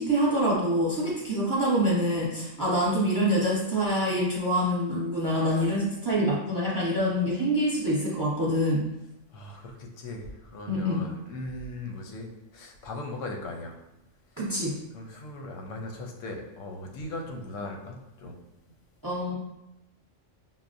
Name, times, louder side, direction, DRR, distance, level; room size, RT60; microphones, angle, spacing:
voice 1, 0.0-8.9 10.7-11.1 14.4-14.8 19.0-19.3, equal, 20° right, -5 dB, 0.7 m, -26 dB
voice 2, 9.3-13.8 14.7-18.4, left 2 dB, 90° left, 2 dB, 1.0 m, -39 dB
5.7 x 2.0 x 2.5 m, 0.89 s
omnidirectional pair, 1.3 m